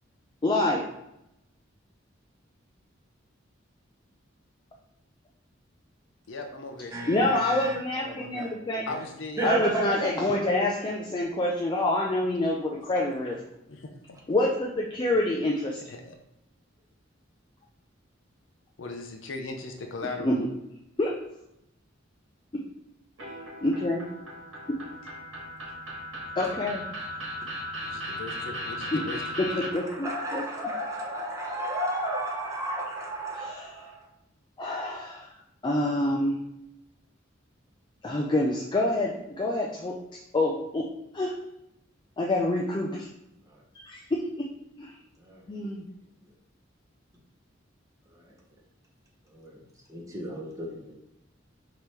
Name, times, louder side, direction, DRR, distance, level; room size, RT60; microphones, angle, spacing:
voice 1, 0.4-0.8 7.1-8.9 9.4-13.4 14.3-15.8 20.2-20.4 21.0-21.1 22.5-22.6 23.6-24.0 24.7-24.8 26.4-26.8 28.9-29.0 29.4-30.4 33.4-33.7 34.6-35.2 35.6-36.4 38.0-39.9 40.3-40.9 41.1-41.4 42.2-43.1 43.7-44.5 44.8-44.9 45.5-45.8, left 1 dB, 25° left, -2 dB, 0.4 m, -27 dB
voice 2, 6.3-7.3 8.9-9.5 13.7-14.2 15.9-16.1 18.8-20.4 25.0-26.4 27.8-29.6, left 3 dB, 75° left, 4 dB, 0.6 m, -39 dB
voice 3, 6.9-7.8 8.0-9.0 9.4-10.1 29.8-34.1 43.5-43.6 45.2-45.4 48.1-48.2 49.3-49.6 49.9-50.9, right 1 dB, 15° right, -3 dB, 1.0 m, -33 dB
sound 1, 23.2-29.7, equal, 90° right, 1.4 m, -37 dB
5.1 x 3.0 x 3.1 m, 0.84 s
head